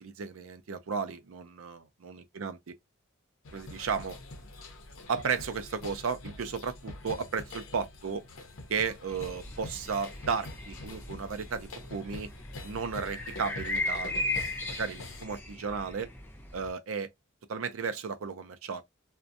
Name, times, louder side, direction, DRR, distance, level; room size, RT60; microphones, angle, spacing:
voice 1, 0.0-2.7 3.5-4.2 5.1-8.3 8.7-12.3 12.6-16.1 16.5-17.1 17.5-18.8, right 5 dB, 85° right, 0.5 m, -34 dB
sound 1, 3.4-15.2, left 2 dB, 80° left, 0.6 m, -45 dB
sound 2, 9.1-16.7, left 2 dB, 10° left, 0.4 m, -37 dB
2.6 x 2.1 x 2.4 m
head